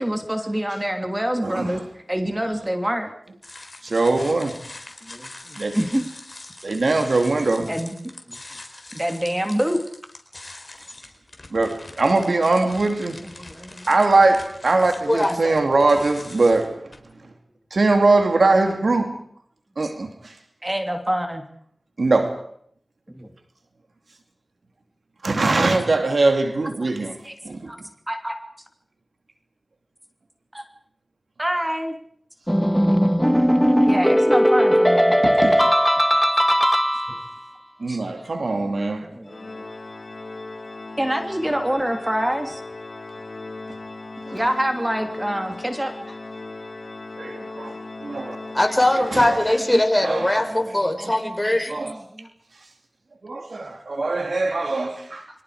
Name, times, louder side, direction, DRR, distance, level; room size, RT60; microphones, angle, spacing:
voice 1, 0.0-1.8 2.1-3.1 5.0-6.1 7.6-8.0 8.3-8.4 8.9-9.8 13.1-13.9 20.6-21.4 23.1-23.3 27.2-27.3 27.7-27.8 28.1-28.4 30.5-30.6 31.4-31.9 33.9-35.2 37.9-38.0 38.5-39.7 41.0-42.6 44.3-46.1 49.7-49.8 50.6-51.1 51.4-51.6 51.8-52.3, equal, 20° right, 3.0 m, -26 dB
voice 2, 1.4-1.8 3.8-4.6 5.6-5.8 6.6-7.7 11.5-13.2 13.9-16.9 17.2-17.3 17.7-19.2 19.8-20.3 22.0-22.4 25.2-27.1 27.4-27.7 35.2-35.7 37.8-39.1 44.3-44.4 47.2-48.4 49.1-49.4 50.0-50.4 51.0-51.1 51.7-51.9 53.2-55.3, right 3 dB, 85° right, 2.7 m, -21 dB
sound 1, 3.4-17.0, left 2 dB, 50° left, 4.1 m, -42 dB
voice 3, 15.1-15.6 48.5-51.7, left 1 dB, 25° left, 5.0 m, -21 dB
sound 2, 32.5-37.4, equal, ahead, 1.8 m, -18 dB
Organ, 39.3-50.0, left 3 dB, 75° left, 3.1 m, -38 dB
29.5 x 24.0 x 5.0 m
wide cardioid pair, 45°, 0 cm